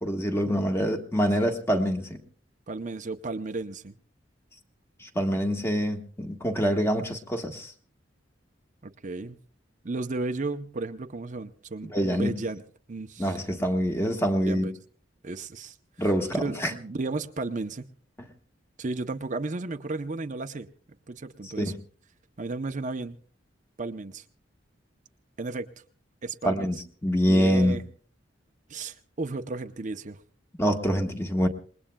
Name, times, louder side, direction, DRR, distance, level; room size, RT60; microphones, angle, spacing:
voice 1, 0.0-2.2 5.0-7.7 11.9-12.3 13.2-14.7 16.0-16.7 21.6-21.8 26.4-26.8 27.0-27.8 30.6-31.5, equal, 15° left, 4 dB, 1.4 m, -25 dB
voice 2, 2.7-3.9 8.8-9.4 9.8-12.6 12.9-13.4 14.5-14.7 15.2-16.1 16.4-17.9 18.8-20.7 21.1-21.7 22.4-23.2 23.8-24.2 25.4-25.7 26.2-26.7 27.2-27.8 28.7-30.2, right 3 dB, 40° right, 7 dB, 0.7 m, -33 dB
27.5 x 20.5 x 2.3 m, 0.43 s
head